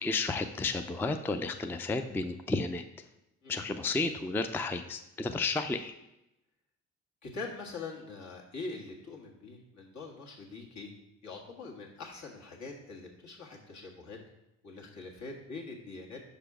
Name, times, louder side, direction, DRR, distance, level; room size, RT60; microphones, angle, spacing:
voice 1, 0.0-2.8 3.5-5.9, left 3 dB, 5° left, 8 dB, 0.3 m, -32 dB
voice 2, 7.2-10.9 11.2-14.2 14.6-16.2, left 3 dB, 65° left, -1 dB, 1.7 m, -43 dB
5.7 x 5.0 x 4.8 m, 0.90 s
cardioid pair, 90°, 30 cm